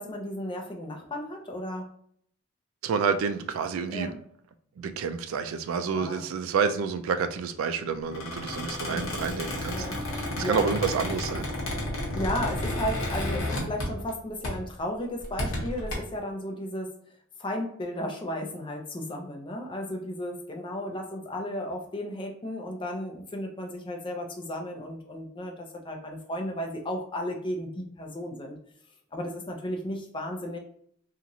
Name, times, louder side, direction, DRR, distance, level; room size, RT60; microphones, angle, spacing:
voice 1, 0.0-1.9 3.9-4.2 5.9-6.3 8.9-9.2 9.7-10.8 12.1-16.9 17.4-28.6 29.1-30.6, left 1 dB, 25° left, 2 dB, 0.4 m, -34 dB
voice 2, 2.8-4.1 4.8-11.5, right 5 dB, 70° right, 9 dB, 0.3 m, -29 dB
Squeak, 8.1-14.2 14.4-14.7 15.2-15.9, left 1 dB, 65° left, 0.9 m, -32 dB
2.9 x 2.4 x 2.6 m, 0.63 s
head